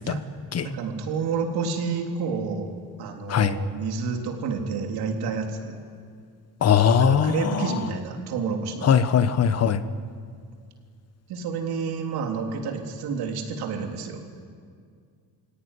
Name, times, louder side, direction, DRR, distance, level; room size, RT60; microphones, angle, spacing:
voice 1, 0.6-2.7 3.0-5.7 7.0-8.9 11.3-14.2, right 5 dB, 80° right, 2 dB, 3.5 m, -29 dB
voice 2, 6.6-7.7 8.8-9.8, left 7 dB, 40° left, 11 dB, 1.2 m, -20 dB
29.5 x 17.0 x 9.9 m, 2.2 s
cardioid pair, 145°, 38 cm